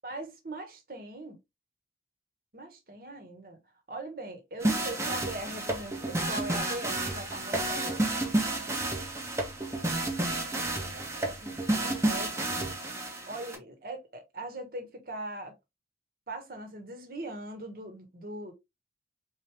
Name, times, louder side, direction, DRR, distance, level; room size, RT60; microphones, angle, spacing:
voice 1, 0.0-1.4 2.5-3.6 3.9-8.0 10.6-12.8 13.3-15.5 16.3-18.5, right 1 dB, 50° right, 1.3 m, -41 dB
sound 1, 4.6-13.6, right 2 dB, 15° right, 1.1 m, -31 dB
4.3 x 3.2 x 3.4 m
head